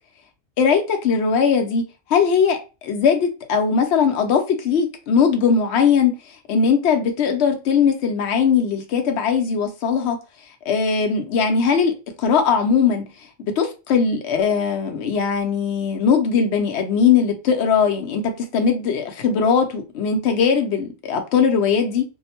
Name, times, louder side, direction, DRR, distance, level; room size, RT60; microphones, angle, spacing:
voice 1, 0.6-1.8 2.1-6.1 6.5-10.2 10.7-13.0 13.4-22.0, left 6 dB, 65° left, 0.8 m, -19 dB
2.5 x 2.0 x 2.8 m
omnidirectional pair, 1.3 m